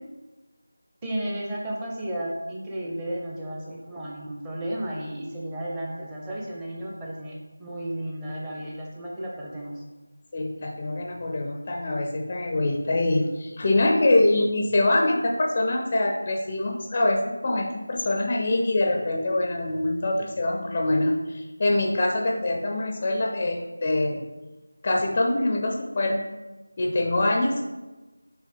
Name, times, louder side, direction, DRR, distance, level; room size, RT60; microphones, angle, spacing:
voice 1, 1.0-9.8, right 1 dB, 10° right, -3 dB, 0.7 m, -33 dB
voice 2, 10.3-24.2 24.8-26.2 26.8-27.6, left 2 dB, 25° left, 2 dB, 0.5 m, -24 dB
6.4 x 3.2 x 5.3 m, 1.1 s
figure-of-eight pair, 170°, 0 cm